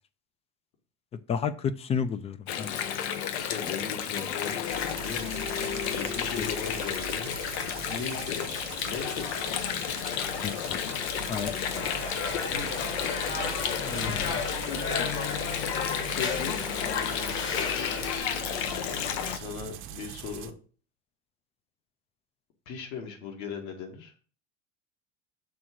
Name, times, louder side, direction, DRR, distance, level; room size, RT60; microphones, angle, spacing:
voice 1, 1.3-2.8 6.4-6.5 10.4-10.8 11.3-11.6 13.8-14.3, left 6 dB, 20° left, 14 dB, 0.3 m, -32 dB
Water, 2.5-19.4, left 9 dB, 90° left, 0.9 m, -32 dB
voice 2, 3.3-5.4 5.9-7.4 7.9-8.6 8.8-9.5 12.3-12.7 13.8-14.1 14.5-15.1 15.6-16.6 19.3-20.5 22.7-24.1, left 6 dB, 65° left, 3 dB, 2.0 m, -38 dB
sound 1, 4.7-20.5, right 11 dB, 40° right, 0.7 m, -42 dB
sound 2, 11.7-18.2, left 5 dB, 40° left, 1.4 m, -34 dB
6.0 x 3.7 x 6.1 m, 0.40 s
supercardioid pair, 140°, 32 cm